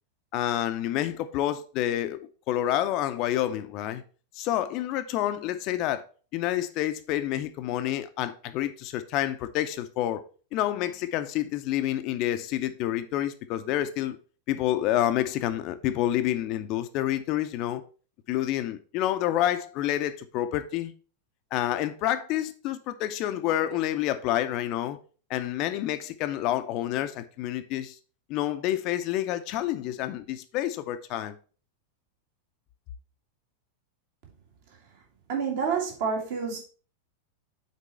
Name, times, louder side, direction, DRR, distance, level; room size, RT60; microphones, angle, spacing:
voice 1, 0.3-2.2 2.5-4.0 4.4-6.0 6.3-10.2 10.5-14.2 14.5-17.8 18.3-20.9 21.5-25.0 25.3-28.0 28.3-31.4, left 13 dB, 40° left, 0.6 m, -28 dB
voice 2, 35.3-36.6, right 6 dB, 50° right, 2.2 m, -28 dB
6.8 x 4.5 x 4.5 m
figure-of-eight pair, 90°, 0 cm